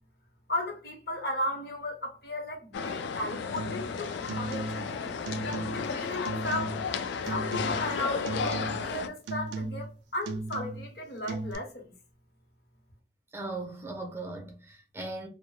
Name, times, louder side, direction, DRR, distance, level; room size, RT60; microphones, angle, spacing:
voice 1, 0.5-5.2 5.7-6.8 7.3-11.8, left 1 dB, 65° left, 0.7 m, -35 dB
sound 1, 2.7-9.1, left 5 dB, 85° left, 0.3 m, -33 dB
sound 2, 3.6-3.9 4.2-4.9 5.2-5.9 6.3-6.9 7.3-8.0 8.3-8.9 9.3-9.9 10.2-10.9 11.3-11.6, right 3 dB, 90° right, 0.3 m, -36 dB
voice 2, 13.3-15.3, right 2 dB, 15° right, 0.4 m, -38 dB
2.2 x 2.0 x 3.0 m
head